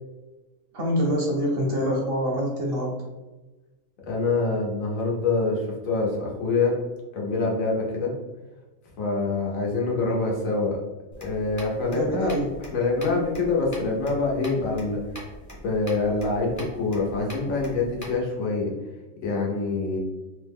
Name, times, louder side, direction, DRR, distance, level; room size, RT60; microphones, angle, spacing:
voice 1, 0.7-3.0 11.9-12.5, equal, 60° right, -1 dB, 0.7 m, -25 dB
voice 2, 4.1-6.8 7.1-8.1 9.0-10.8 11.2-12.4 12.7-15.0 15.6-18.7 19.2-20.0, left 3 dB, 80° left, -2 dB, 1.2 m, -25 dB
sound 1, 11.1-18.2, equal, 25° left, 0.4 m, -43 dB
3.0 x 2.1 x 3.4 m, 1.2 s
omnidirectional pair, 1.4 m